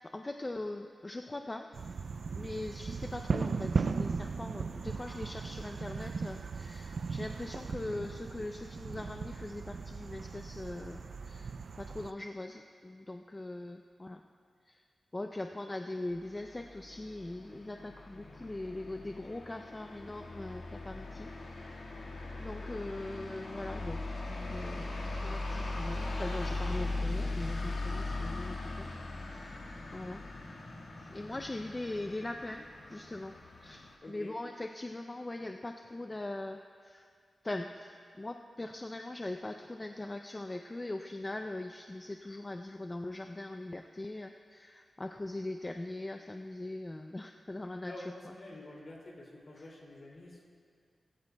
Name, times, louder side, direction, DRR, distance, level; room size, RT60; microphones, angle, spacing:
voice 1, 0.0-1.7 2.3-14.2 14.7-14.8 15.1-21.3 22.4-24.0 24.3-28.9 29.3-29.6 29.9-30.3 31.0-37.1 37.4-47.9, left 2 dB, 20° left, 4 dB, 0.3 m, -41 dB
sound 1, 1.7-12.1, right 5 dB, 55° right, 0.4 m, -37 dB
sound 2, 16.1-34.0, left 2 dB, 65° left, 1.6 m, -39 dB
voice 2, 34.0-34.3 47.8-50.4, left 1 dB, 45° left, -2 dB, 2.3 m, -48 dB
19.0 x 15.5 x 2.2 m, 2.2 s
wide cardioid pair, 170°, 0 cm